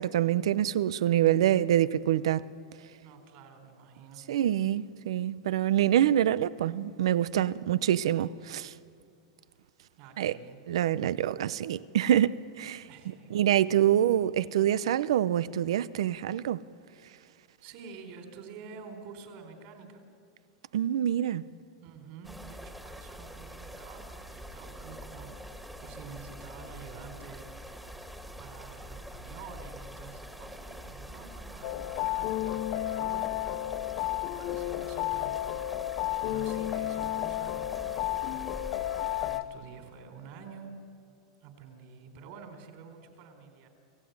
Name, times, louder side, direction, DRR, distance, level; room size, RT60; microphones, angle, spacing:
voice 1, 0.0-2.5 4.3-8.7 10.2-10.4 10.7-12.9 13.3-16.6 20.7-21.4, right 11 dB, 85° right, 0.7 m, -26 dB
voice 2, 3.0-4.2 10.0-10.6 12.9-14.0 17.6-20.0 21.8-28.0 28.4-38.6 39.0-40.7 41.4-43.7, right 5 dB, 50° right, 4.2 m, -49 dB
sound 1, 22.2-39.4, equal, 5° right, 1.8 m, -45 dB
sound 2, 31.6-39.4, left 15 dB, 45° left, 0.7 m, -32 dB
29.0 x 16.0 x 9.6 m
supercardioid pair, 145°, 3 cm